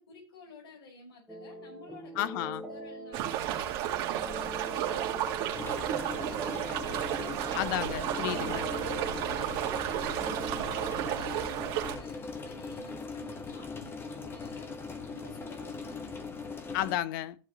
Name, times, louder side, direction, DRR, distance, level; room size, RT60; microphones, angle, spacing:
voice 1, 0.0-7.5 8.1-14.7 15.0-16.4, left 3 dB, 80° left, 5.4 m, -52 dB
sound 1, 1.3-11.5, right 1 dB, ahead, 1.8 m, -44 dB
voice 2, 2.2-2.6 7.5-8.7 16.7-17.3, left 13 dB, 55° left, 0.7 m, -32 dB
sound 2, 3.1-12.0, right 11 dB, 50° right, 2.1 m, -33 dB
sound 3, 5.5-17.0, left 4 dB, 15° left, 1.3 m, -40 dB
14.0 x 7.5 x 3.1 m
hypercardioid pair, 115°, 13 cm